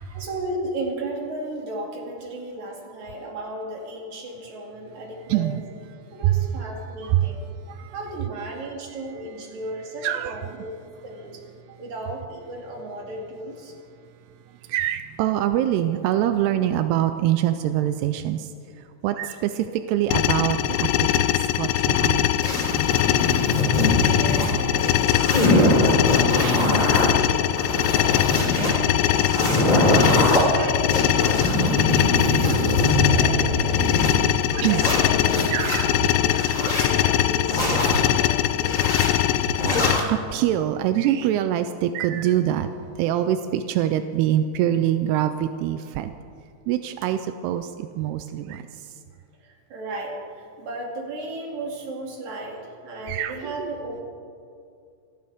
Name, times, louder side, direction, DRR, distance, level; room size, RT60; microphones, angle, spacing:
voice 1, 0.1-5.5 6.1-7.4 7.9-11.4 11.7-13.7 23.9-25.8 26.3-29.7 30.2-33.9 34.2-36.4 36.8-37.8 38.2-39.0 49.4-54.0, right 1 dB, 50° right, -1 dB, 3.6 m, -35 dB
voice 2, 5.3-5.6 6.2-6.4 7.1-7.3 7.7-8.0 10.0-10.4 14.6-18.5 18.8-21.2 21.6-22.3 25.3-26.0 26.4-26.6 29.9-30.2 33.9-34.8 35.5-36.1 38.1-38.2 39.2-46.1 46.7-48.9 53.1-53.7, right 12 dB, 85° right, 9 dB, 2.6 m, -25 dB
sound 1, 20.1-40.0, left 13 dB, 85° left, 2.6 m, -22 dB
sound 2, 22.4-24.5 24.8-27.1 27.5-28.7 29.1-30.4 30.9-34.1 34.6-35.8 36.3-36.9 37.5-38.0 38.6-39.1 39.6-40.1, left 1 dB, 20° left, 5.4 m, -22 dB
27.0 x 14.5 x 3.6 m, 2.3 s
omnidirectional pair, 4.6 m